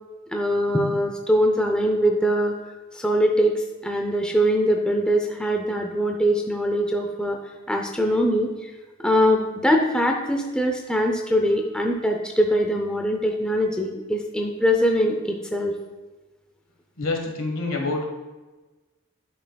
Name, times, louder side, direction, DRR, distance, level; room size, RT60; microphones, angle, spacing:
voice 1, 0.3-2.6 2.9-7.4 7.7-8.5 9.0-15.7, equal, 5° left, 2 dB, 0.6 m, -22 dB
voice 2, 17.0-18.1, left 3 dB, 70° left, 1 dB, 1.4 m, -27 dB
11.0 x 5.8 x 2.3 m, 1.2 s
head